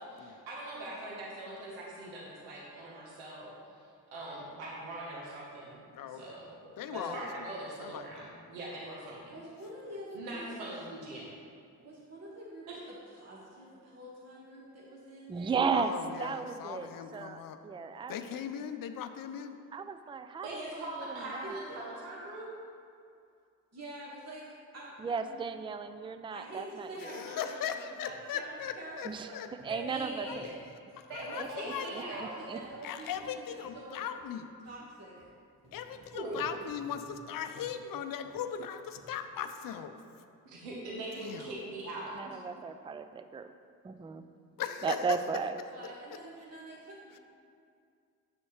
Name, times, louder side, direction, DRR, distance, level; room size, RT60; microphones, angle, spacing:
voice 1, 0.0-5.8 6.1-6.5 6.9-9.3 10.1-11.3 12.7-12.8 20.4-22.5 29.7-30.5 31.1-32.4 36.1-36.4 40.4-42.4, right 2 dB, 90° right, -5 dB, 1.2 m, -42 dB
voice 2, 5.9-6.4 6.8-7.5 7.8-8.3 15.7-17.6 18.1-19.6 27.0-29.5 30.2-30.6 31.0-31.9 32.8-34.5 35.7-40.0 41.2-41.6 44.6-45.2 47.1-47.2, left 8 dB, 55° left, 9 dB, 0.6 m, -39 dB
voice 3, 9.3-10.5 11.8-16.7 21.2-21.8 23.7-24.4 24.7-25.4 26.3-29.4 30.1-30.4 31.2-34.0 34.6-35.3 45.7-47.2, right 1 dB, 40° right, -5 dB, 1.6 m, -47 dB
voice 4, 15.3-15.9 16.2-18.2 19.7-20.6 21.0-21.6 25.0-27.1 29.0-29.3 29.6-30.6 31.6-32.6 42.2-43.5 43.8-44.2 44.8-45.6, right 5 dB, 15° right, 9 dB, 0.4 m, -35 dB
sound 1, 28.1-28.2 28.6-28.7 29.1-29.2 29.6-30.7 31.1-31.3 31.6-31.7 32.1-32.2 32.6-32.8 33.1-33.3 33.6-33.8 34.2-34.3 34.6-34.8 35.2-35.3 35.6-37.2 37.5-37.7 38.2-38.6 39.0-39.4 39.9-40.0, right 1 dB, 65° right, 1.6 m, -58 dB
9.2 x 6.3 x 3.1 m, 2.4 s
hypercardioid pair, 40°, 40 cm